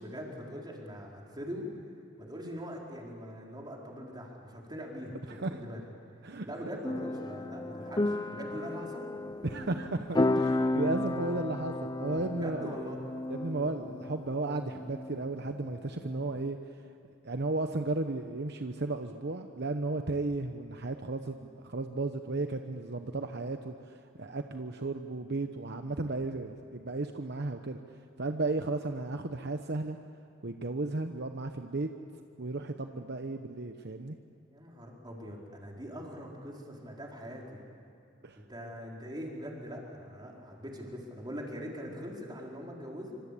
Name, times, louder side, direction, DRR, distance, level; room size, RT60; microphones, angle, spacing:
voice 1, 0.0-1.7 2.2-5.8 6.4-9.1 12.3-13.0 34.5-37.6 38.3-43.2, equal, 20° right, -1 dB, 4.5 m, -42 dB
voice 2, 5.3-5.6 6.2-6.5 9.4-12.7 13.3-16.6 17.2-27.8 28.2-30.0 30.4-31.9 32.4-34.2 38.2-38.4, right 2 dB, 55° right, 6 dB, 1.0 m, -34 dB
sound 1, 6.8-16.5, left 2 dB, 20° left, 0.7 m, -33 dB
26.0 x 25.5 x 8.5 m, 2.6 s
head